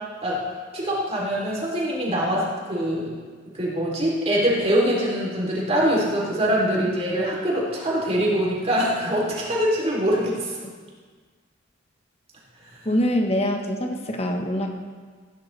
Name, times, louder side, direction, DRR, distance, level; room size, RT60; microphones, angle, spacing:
voice 1, 0.7-3.1 3.5-10.6, equal, 35° right, -4 dB, 3.3 m, -23 dB
voice 2, 12.8-14.7, equal, 30° left, 3 dB, 1.2 m, -24 dB
16.0 x 11.0 x 3.3 m, 1.5 s
head